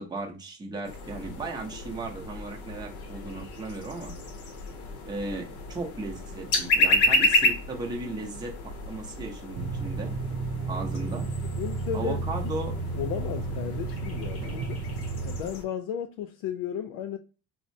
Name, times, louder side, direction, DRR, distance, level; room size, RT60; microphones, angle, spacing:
voice 1, 0.0-4.2 5.1-8.5 8.9-10.1 10.7-11.3 11.9-12.7, right 3 dB, 10° right, 0.6 m, -36 dB
sound 1, 0.8-15.6, left 2 dB, 45° left, 0.8 m, -31 dB
sound 2, 9.6-15.4, right 3 dB, 80° right, 0.6 m, -32 dB
voice 2, 11.6-12.2 12.9-14.8 15.2-17.2, left 8 dB, 70° left, 0.6 m, -34 dB
4.1 x 2.0 x 2.7 m
cardioid pair, 175°, 35 cm